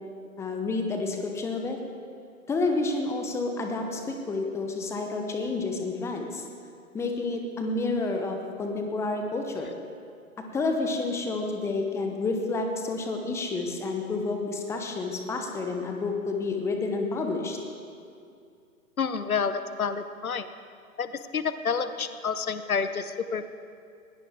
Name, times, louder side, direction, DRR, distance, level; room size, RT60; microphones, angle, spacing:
voice 1, 0.4-1.8 2.5-6.4 6.9-9.7 10.5-17.6, left 3 dB, 5° left, 3 dB, 0.9 m, -29 dB
voice 2, 19.0-20.5 21.0-23.5, left 6 dB, 75° left, 12 dB, 1.0 m, -29 dB
20.0 x 16.5 x 3.7 m, 2.5 s
figure-of-eight pair, 120°, 43 cm